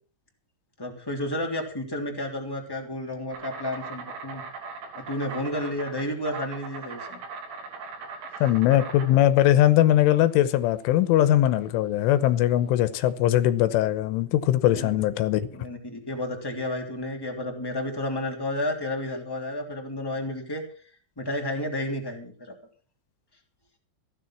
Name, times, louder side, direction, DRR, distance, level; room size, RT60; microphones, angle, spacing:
voice 1, 0.8-4.4 4.9-7.2 14.7-14.9 15.5-20.6 21.2-22.5, left 1 dB, 5° left, 1.8 m, -31 dB
Insect, 3.3-13.3, right 4 dB, 70° right, 5.4 m, -40 dB
voice 2, 8.4-15.5, left 13 dB, 80° left, 3.4 m, -21 dB
15.5 x 10.0 x 6.0 m
omnidirectional pair, 5.6 m